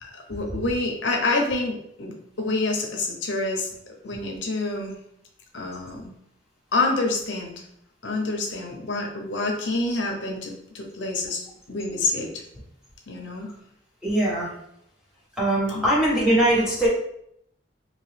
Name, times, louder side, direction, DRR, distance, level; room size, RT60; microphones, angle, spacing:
voice 1, 0.0-3.7 4.0-5.0 5.5-6.1 6.7-7.5 8.0-12.4 13.1-13.5 15.7-15.8, left 2 dB, 80° left, 1 dB, 0.8 m, -27 dB
voice 2, 14.0-14.5 15.4-16.9, right 1 dB, 5° right, -7 dB, 1.3 m, -21 dB
3.9 x 2.7 x 3.3 m, 0.72 s
head